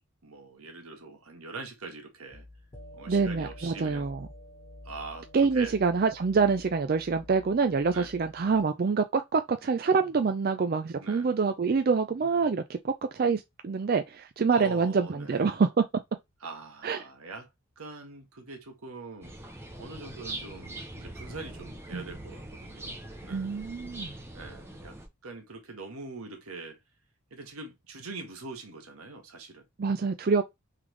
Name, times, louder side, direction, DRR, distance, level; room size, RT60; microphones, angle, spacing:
voice 1, 0.2-2.5 2.9-4.1 4.8-5.7 7.9-8.1 11.0-11.3 14.5-15.6 16.4-17.5 17.8-19.3 19.8-23.6 24.3-26.8 27.3-29.6, right 3 dB, 85° right, 1.4 m, -43 dB
sound 1, 2.3-8.6, left 1 dB, 25° left, 1.3 m, -49 dB
voice 2, 3.1-4.2 5.3-15.9 16.8-17.0 21.9-22.0 23.3-24.1 29.8-30.4, right 5 dB, 45° right, 0.4 m, -26 dB
sound 2, 19.2-25.1, right 1 dB, 10° right, 0.7 m, -42 dB
3.8 x 3.2 x 3.2 m
head